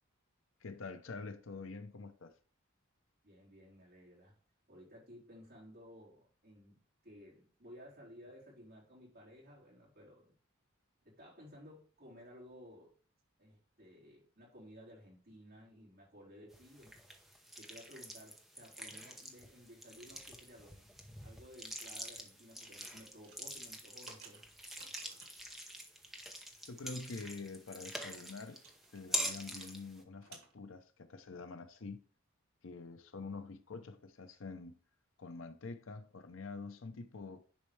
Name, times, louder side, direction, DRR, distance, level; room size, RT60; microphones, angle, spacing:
voice 1, 0.6-2.3 26.7-28.6 28.9-32.0 32.6-34.8 35.2-37.4, left 3 dB, 70° left, 0.7 m, -46 dB
voice 2, 3.2-4.4 4.7-6.8 7.0-10.4 11.0-12.9 13.4-17.0 17.6-20.9 21.2-24.4, equal, 50° right, 3.8 m, -56 dB
sound 1, 16.5-30.0, equal, ahead, 0.8 m, -45 dB
sound 2, 23.2-25.5 26.2-26.5 26.9-27.0 27.2-27.3 27.7-29.7 29.9-30.5, right 6 dB, 80° right, 1.8 m, -57 dB
10.5 x 4.4 x 3.3 m
head